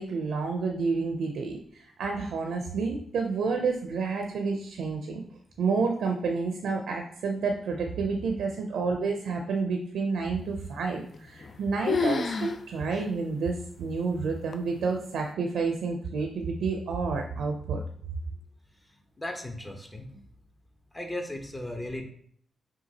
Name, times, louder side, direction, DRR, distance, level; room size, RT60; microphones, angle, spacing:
voice 1, 0.0-5.2 5.6-17.8, right 4 dB, 75° right, 3 dB, 0.5 m, -29 dB
sound 1, 11.1-11.6 11.9-12.6 12.9-13.0 13.7-13.8 14.5-14.9, left 5 dB, 55° left, 0.4 m, -29 dB
voice 2, 19.2-20.1 20.9-22.0, left 1 dB, 25° left, 2 dB, 0.9 m, -36 dB
5.8 x 2.4 x 2.8 m, 0.63 s
hypercardioid pair, 40°, 0 cm